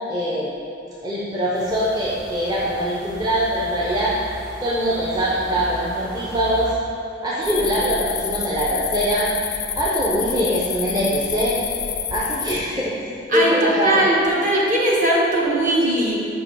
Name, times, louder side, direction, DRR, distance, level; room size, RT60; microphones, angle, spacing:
voice 1, 0.1-0.5 1.0-4.2 4.6-6.8 7.2-9.3 9.8-11.6 12.1-12.9 13.3-14.0, equal, 20° right, -7 dB, 0.7 m, -22 dB
sound 1, 1.5-6.7, right 1 dB, 85° right, 1.0 m, -37 dB
sound 2, 7.4-12.6, left 8 dB, 35° left, 0.4 m, -28 dB
voice 2, 13.3-16.1, right 1 dB, 45° right, -4 dB, 1.2 m, -19 dB
5.0 x 4.8 x 5.5 m, 2.6 s
head